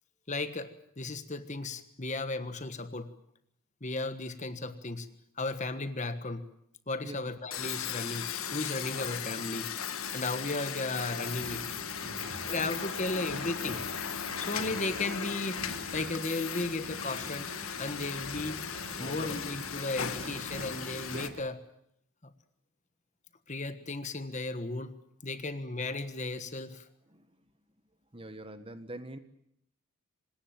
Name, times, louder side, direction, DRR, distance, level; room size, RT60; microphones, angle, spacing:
voice 1, 0.3-3.1 3.8-5.1 5.4-6.4 6.9-9.7 10.1-11.6 12.5-13.8 14.4-17.5 17.8-18.6 19.0-21.6 22.2-22.3 23.5-24.9 25.2-26.8, left 2 dB, 30° left, 11 dB, 1.4 m, -35 dB
sound 1, 7.5-21.3, left 7 dB, 70° left, 1.7 m, -37 dB
Male speech man speaking / Chatter / Rattle, 11.4-21.4, right 2 dB, 60° right, 1.9 m, -46 dB
voice 2, 12.0-12.5 14.6-14.8 19.0-19.4 20.3-20.5 27.1-27.4 28.1-29.2, right 1 dB, 25° right, 10 dB, 1.4 m, -45 dB
25.5 x 20.0 x 8.9 m, 0.72 s
head